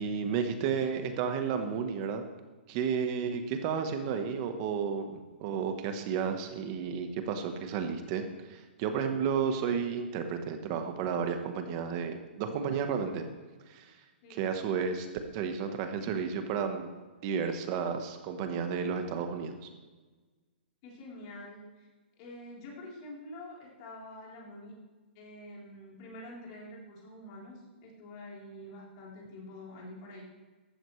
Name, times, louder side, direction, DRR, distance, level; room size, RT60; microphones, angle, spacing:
voice 1, 0.0-2.2 2.7-13.2 13.7-13.9 14.3-15.1 15.3-16.9 17.2-19.7, right 6 dB, 25° right, 6 dB, 1.2 m, -32 dB
voice 2, 20.8-21.9 22.2-24.8 25.2-30.2, left 1 dB, 30° left, -3 dB, 3.7 m, -47 dB
15.0 x 12.0 x 3.2 m, 1.3 s
hypercardioid pair, 170°, 6 cm